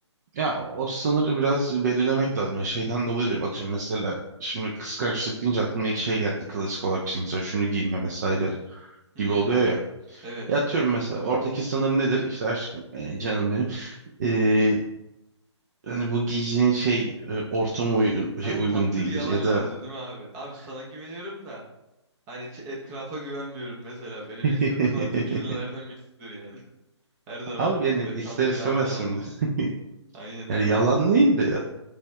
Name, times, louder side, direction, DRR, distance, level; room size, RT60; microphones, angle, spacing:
voice 1, 0.3-4.1 4.4-8.5 8.8-9.8 10.1-14.8 15.8-19.6 24.4-25.4 27.6-29.7 30.5-31.6, right 3 dB, 35° right, -2 dB, 0.5 m, -25 dB
voice 2, 9.1-9.6 10.2-10.5 11.2-11.5 18.4-21.7 22.3-25.9 26.2-26.6 27.3-27.7 28.0-29.3 30.1-30.8, right 1 dB, 20° right, -3 dB, 0.9 m, -37 dB
6.5 x 3.4 x 2.3 m, 0.91 s
figure-of-eight pair, 145°, 15 cm